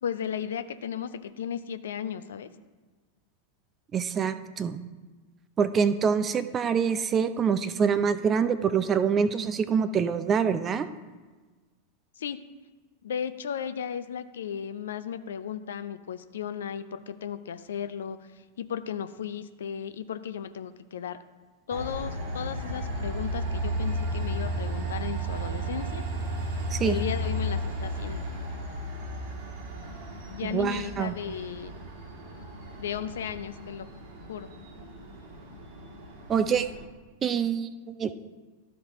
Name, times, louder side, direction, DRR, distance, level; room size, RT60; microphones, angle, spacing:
voice 1, 0.0-2.5 12.2-12.4 13.0-18.2 18.6-21.2 21.7-26.0 26.8-28.2 30.3-31.7 32.8-33.9 34.3-34.5, left 8 dB, 65° left, 11 dB, 0.4 m, -35 dB
voice 2, 3.9-4.8 5.6-10.9 26.7-27.0 30.4-31.1 36.3-36.7 37.2-38.1, right 6 dB, 25° right, 12 dB, 0.5 m, -25 dB
Train, 21.7-36.8, right 1 dB, 50° right, 1.4 m, -34 dB
13.0 x 4.6 x 3.7 m, 1.3 s
figure-of-eight pair, 90°, 0 cm